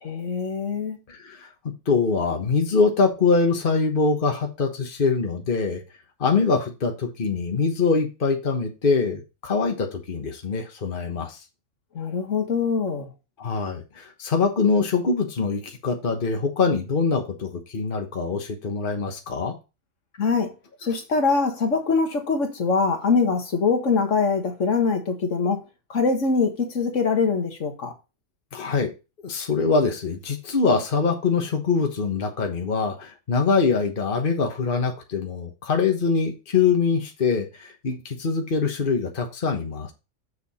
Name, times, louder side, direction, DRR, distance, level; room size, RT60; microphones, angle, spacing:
voice 1, 0.0-1.0 11.9-13.1 20.2-20.5 20.8-25.6 25.9-27.9, left 4 dB, 70° left, 1.8 m, -23 dB
voice 2, 1.1-1.5 1.9-5.8 6.2-11.4 13.4-19.5 28.5-28.9 29.2-39.9, left 4 dB, 45° left, 1.4 m, -23 dB
6.9 x 6.8 x 4.2 m
omnidirectional pair, 1.3 m